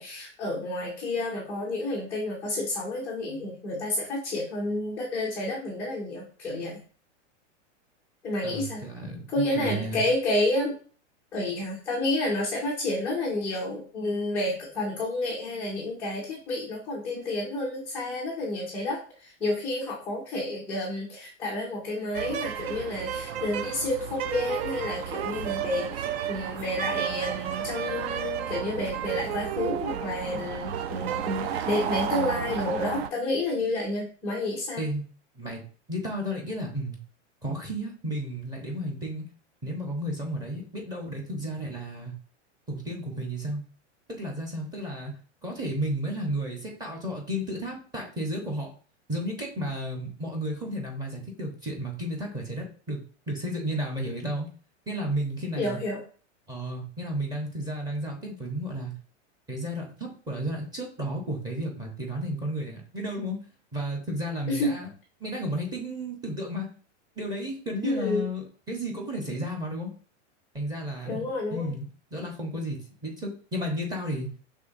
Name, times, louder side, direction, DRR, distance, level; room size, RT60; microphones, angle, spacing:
voice 1, 0.0-6.8 8.2-8.8 9.3-10.7 11.3-34.8 55.6-56.0 64.5-64.7 67.8-68.2 71.1-71.7, left 2 dB, 5° left, -5 dB, 0.3 m, -30 dB
voice 2, 8.4-10.1 34.8-35.1 35.3-35.6 35.9-37.0 37.4-39.2 39.6-42.1 42.7-43.6 44.1-45.1 45.4-48.7 49.1-54.5 54.9-55.8 56.5-58.9 59.5-63.4 63.7-64.9 65.2-66.7 67.2-69.9 70.5-71.9 72.1-74.3, equal, 10° right, 0 dB, 1.0 m, -33 dB
sound 1, 22.1-33.1, right 9 dB, 60° right, 0.5 m, -32 dB
5.6 x 3.5 x 2.6 m, 0.41 s
supercardioid pair, 155°, 37 cm